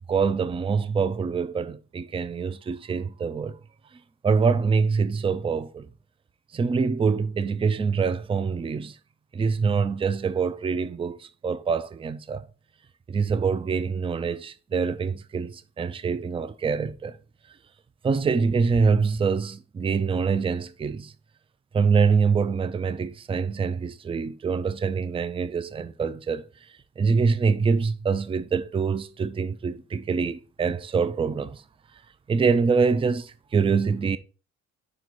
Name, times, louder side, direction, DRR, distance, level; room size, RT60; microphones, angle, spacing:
voice 1, 0.0-3.6 4.2-5.9 6.5-8.9 9.3-12.5 13.1-17.1 18.0-21.1 21.7-26.4 27.0-31.6 32.3-34.2, right 5 dB, 20° right, 0.4 m, -25 dB
5.2 x 4.6 x 4.0 m
cardioid pair, 90°, 30 cm